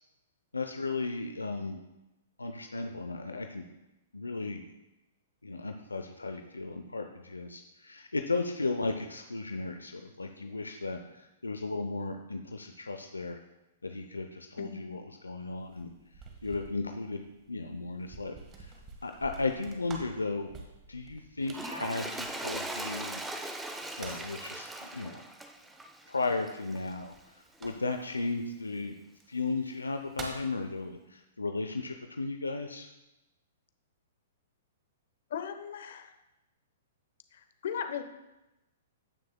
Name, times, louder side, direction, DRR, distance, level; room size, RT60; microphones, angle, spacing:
voice 1, 0.5-1.8 2.4-3.6 4.1-4.6 5.4-13.4 13.8-15.9 16.4-17.2 17.5-18.7 19.0-20.5 20.9-23.2 24.0-25.2 26.1-27.1 27.6-29.0 29.3-32.9, left 3 dB, 90° left, 5 dB, 0.6 m, -35 dB
sound 1, 15.6-23.0 23.6-24.4 26.8-28.1 29.1-29.2 29.7-30.5, right 3 dB, 25° right, 1.6 m, -48 dB
Toilet flush, 21.4-26.9 27.6-27.7, right 2 dB, 10° right, 0.7 m, -40 dB
voice 2, 35.3-36.1 37.3-38.0, left 8 dB, 60° left, 8 dB, 0.9 m, -37 dB
16.5 x 6.2 x 2.2 m, 0.97 s
figure-of-eight pair, 115°, 0 cm